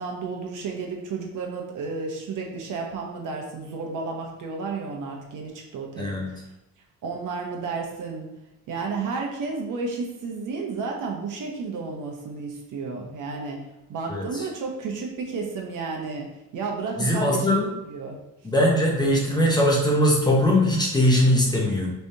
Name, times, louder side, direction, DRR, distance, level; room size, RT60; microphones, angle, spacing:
voice 1, 0.0-6.4 7.0-8.3 8.7-13.6 13.9-17.6 17.9-18.2, right 4 dB, 70° right, 1 dB, 1.0 m, -32 dB
voice 2, 6.0-6.3 14.1-14.4 17.0-17.7 18.4-21.9, left 1 dB, 10° left, -2 dB, 0.9 m, -21 dB
4.9 x 3.3 x 2.8 m, 0.91 s
cardioid pair, 135°, 33 cm